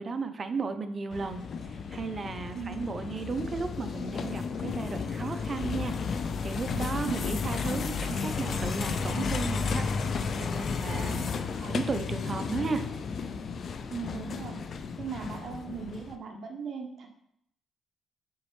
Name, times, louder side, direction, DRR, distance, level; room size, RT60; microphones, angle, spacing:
voice 1, 0.0-5.9 6.4-10.1 10.4-12.8, right 4 dB, 35° right, 8 dB, 0.6 m, -35 dB
sound 1, 1.1-16.2, left 5 dB, 55° left, 0.4 m, -33 dB
voice 2, 10.9-11.3 11.6-11.7 13.9-17.1, right 5 dB, 55° right, 2 dB, 1.1 m, -39 dB
7.0 x 4.1 x 3.2 m, 0.74 s
cardioid pair, 90°, 0 cm